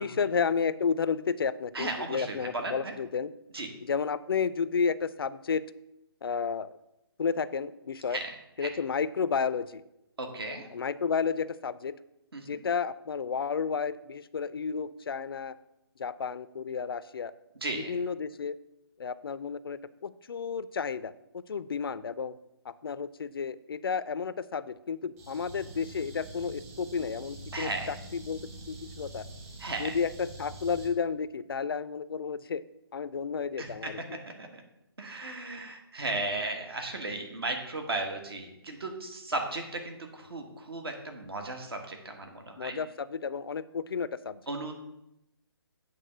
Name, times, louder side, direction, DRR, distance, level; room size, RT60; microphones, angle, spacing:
voice 1, 0.0-3.3 3.9-5.6 6.2-6.8 7.2-8.2 8.6-9.8 10.7-12.0 12.5-15.6 16.0-17.3 17.7-18.6 19.0-22.3 22.7-28.4 28.7-29.3 29.8-32.6 32.9-34.2 42.6-44.4, left 6 dB, 65° left, 16 dB, 0.4 m, -32 dB
voice 2, 1.7-2.9 3.5-3.7 8.1-8.3 8.6-8.7 10.2-10.7 12.3-12.4 17.6-17.9 27.5-27.9 29.6-29.9 33.6-33.9 34.2-34.6 35.0-42.8 44.5-44.7, right 2 dB, 65° right, 4 dB, 1.6 m, -35 dB
sound 1, 25.2-30.9, right 2 dB, 35° right, 1.6 m, -45 dB
8.3 x 3.6 x 6.6 m, 0.88 s
figure-of-eight pair, 145°, 13 cm